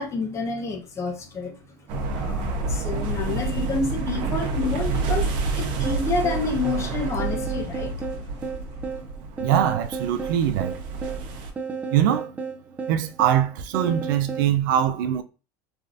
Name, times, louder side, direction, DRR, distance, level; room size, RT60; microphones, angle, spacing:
voice 1, 0.0-1.8 2.1-5.3 5.5-7.9, left 3 dB, 30° left, 0.6 m, -29 dB
sound 1, 1.9-11.5, right 3 dB, 55° right, 0.7 m, -29 dB
sound 2, 5.8-14.5, right 5 dB, 15° right, 0.4 m, -33 dB
voice 2, 9.4-10.7 11.9-12.3 12.9-15.2, right 10 dB, 90° right, 0.4 m, -22 dB
3.3 x 2.4 x 2.5 m
supercardioid pair, 135°, 10 cm